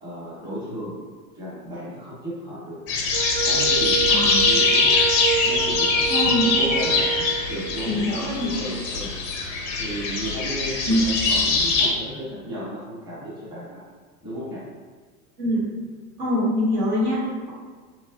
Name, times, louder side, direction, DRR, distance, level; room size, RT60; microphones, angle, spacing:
voice 1, 0.0-1.0 1.4-2.8 3.4-4.9 5.4-6.0 6.4-8.0 8.4-9.1 9.8-13.8 14.2-14.6, equal, 10° right, -9 dB, 0.9 m, -34 dB
sound 1, 2.9-11.9, left 4 dB, 30° left, 0.4 m, -22 dB
Wind instrument woodwind instrument, 3.1-7.8, right 8 dB, 45° right, 0.7 m, -28 dB
voice 2, 4.1-4.5 6.1-6.5 7.8-8.6 10.9-11.0 15.4-15.7 16.2-17.5, left 1 dB, 65° right, -6 dB, 1.2 m, -24 dB
3.0 x 2.3 x 2.5 m, 1.5 s
figure-of-eight pair, 90°, 48 cm